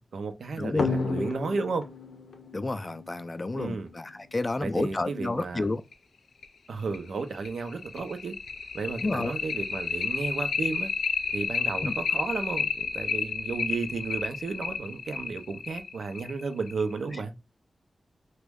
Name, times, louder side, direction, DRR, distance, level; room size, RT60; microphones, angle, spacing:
voice 1, 0.0-1.9 3.5-3.9 4.6-5.7 6.7-8.3 8.7-10.9 11.3-17.3, right 4 dB, 85° right, 0.5 m, -33 dB
voice 2, 0.6-0.9 2.5-5.8 9.0-9.3 11.8-11.9, left 2 dB, 35° left, 0.3 m, -30 dB
sound 1, 0.8-3.9 5.4-5.5 5.9-6.0 6.4-6.5 6.9-17.0, left 5 dB, 90° left, 0.5 m, -31 dB
3.0 x 2.2 x 3.5 m
wide cardioid pair, 80°, 0 cm